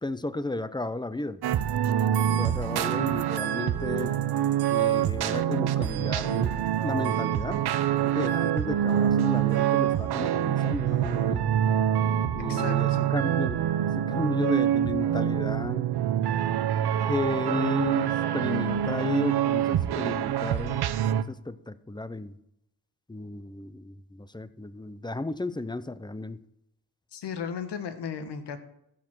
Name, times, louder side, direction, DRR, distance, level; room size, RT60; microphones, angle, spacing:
voice 1, 0.0-1.4 2.0-4.1 4.7-7.6 7.9-11.5 12.3-13.7 14.0-15.9 17.1-20.9 21.2-22.4 23.1-26.4, left 2 dB, 10° left, 14 dB, 0.7 m, -33 dB
sound 1, 1.4-21.2, right 10 dB, 75° right, 0.7 m, -26 dB
voice 2, 12.5-13.1 27.1-28.6, left 7 dB, 85° left, 9 dB, 1.4 m, -35 dB
15.0 x 5.0 x 6.2 m, 0.80 s
cardioid pair, 70°, 40 cm